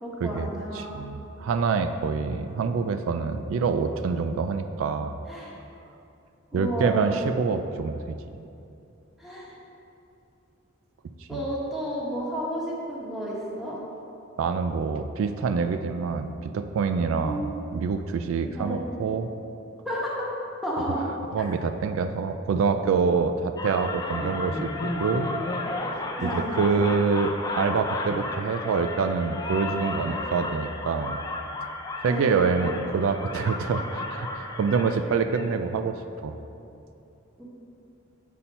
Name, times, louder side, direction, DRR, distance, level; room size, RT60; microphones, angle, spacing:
voice 1, 0.0-1.0 5.3-5.5 6.5-7.2 9.2-9.6 11.3-13.8 17.2-17.5 18.6-18.8 19.8-20.3 20.6-21.5 26.2-26.6 32.1-32.5 37.4-37.5, equal, ahead, -7 dB, 1.3 m, -31 dB
voice 2, 0.7-5.2 6.5-8.2 11.2-11.5 14.4-19.3 21.3-25.3 26.2-31.2 32.0-36.4, right 5 dB, 75° right, 8 dB, 0.3 m, -26 dB
sound 1, 23.6-35.5, left 2 dB, 15° left, 0.4 m, -33 dB
7.2 x 4.2 x 5.4 m, 2.8 s
head